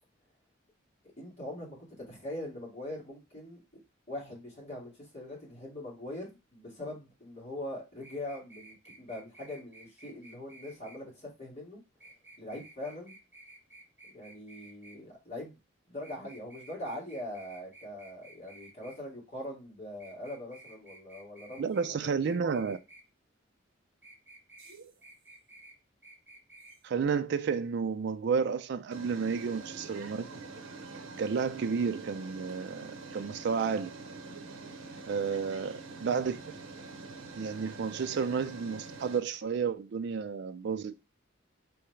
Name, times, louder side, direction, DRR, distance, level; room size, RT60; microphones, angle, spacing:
voice 1, 1.2-3.6 4.1-11.8 12.4-13.2 14.0-15.6 15.9-22.2, left 1 dB, 35° left, 2.1 m, -42 dB
sound 1, 8.0-11.0 12.0-15.0 16.0-19.0 20.0-23.0 24.0-24.8 25.0-25.8 26.0-26.8 27.0-27.1, right 2 dB, 10° right, 0.9 m, -54 dB
voice 2, 21.6-22.8 26.8-30.3 31.2-33.9 35.1-36.4 37.3-40.9, right 5 dB, 55° right, 0.4 m, -31 dB
sound 2, 24.6-25.0 26.7-26.8 28.9-39.2, right 3 dB, 85° right, 0.8 m, -45 dB
3.8 x 3.4 x 3.1 m
head